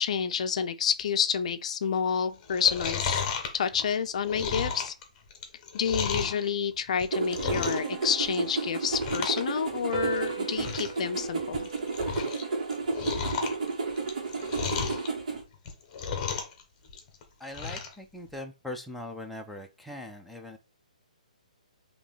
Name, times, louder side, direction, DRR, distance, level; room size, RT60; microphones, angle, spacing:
voice 1, 0.0-3.2 3.5-4.9 5.7-11.7, left 7 dB, 55° left, 0.4 m, -29 dB
Chewing mastication, 2.4-6.4 6.9-7.9 8.2-8.6 8.9-9.4 9.7-9.8 10.2-10.3 10.5-11.0 11.4-12.4 12.7-15.1 15.5-16.6 16.9-17.9 18.3-18.4, left 5 dB, 30° left, 1.0 m, -33 dB
sound 1, 7.1-15.4, right 4 dB, 65° right, 1.6 m, -32 dB
sound 2, 7.4-9.2 9.9-12.6, right 4 dB, 35° right, 1.4 m, -40 dB
voice 2, 17.4-20.6, left 1 dB, ahead, 0.5 m, -41 dB
5.0 x 2.9 x 3.2 m
hypercardioid pair, 140°, 4 cm